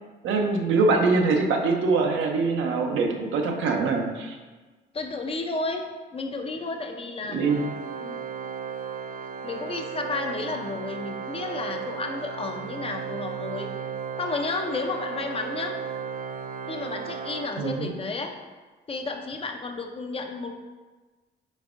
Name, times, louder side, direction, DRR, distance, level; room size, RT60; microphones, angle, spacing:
voice 1, 0.2-4.4 7.3-7.7 17.6-17.9, right 3 dB, 80° right, 3 dB, 0.6 m, -23 dB
voice 2, 4.9-7.4 8.0-8.2 9.4-13.7 14.2-15.8 16.6-18.4 18.9-20.5, left 3 dB, 30° left, 4 dB, 0.5 m, -32 dB
Organ, 7.4-18.2, right 6 dB, 45° right, 0.4 m, -35 dB
5.2 x 3.4 x 2.5 m, 1.3 s
cardioid pair, 90°, 20 cm